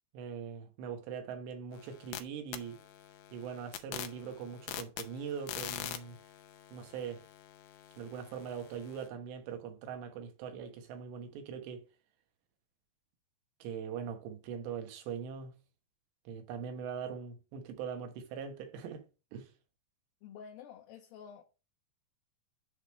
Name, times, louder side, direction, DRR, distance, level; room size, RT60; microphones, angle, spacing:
voice 1, 0.1-2.8 3.3-6.2 6.7-7.3 8.0-11.8 13.6-15.5 16.3-19.0 19.3-19.5, right 7 dB, 90° right, 3.4 m, -41 dB
sound 1, 1.7-2.2 2.5-9.1, left 12 dB, 90° left, 3.1 m, -45 dB
voice 2, 20.2-21.4, left 7 dB, 75° left, 2.3 m, -50 dB
10.0 x 3.4 x 5.2 m
omnidirectional pair, 4.8 m